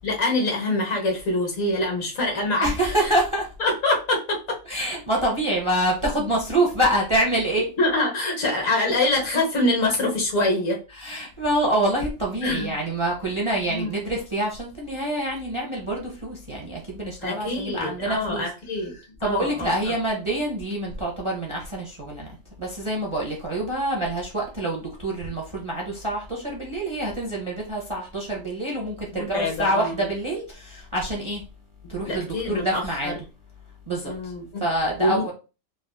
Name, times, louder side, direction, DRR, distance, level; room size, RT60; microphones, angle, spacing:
voice 1, 0.0-3.1 3.6-4.6 7.8-10.8 12.4-12.8 13.7-13.9 17.2-18.9 19.2-19.7 29.1-30.0 31.8-33.1 34.0-34.6 35.0-35.3, left 2 dB, 85° left, 1.5 m, -25 dB
voice 2, 2.6-3.5 4.7-7.7 10.9-18.5 18.9-22.3 22.6-31.4 31.9-33.2 33.9-34.3 34.6-35.3, right 1 dB, 35° right, 0.5 m, -26 dB
3.5 x 2.4 x 2.2 m
omnidirectional pair, 1.4 m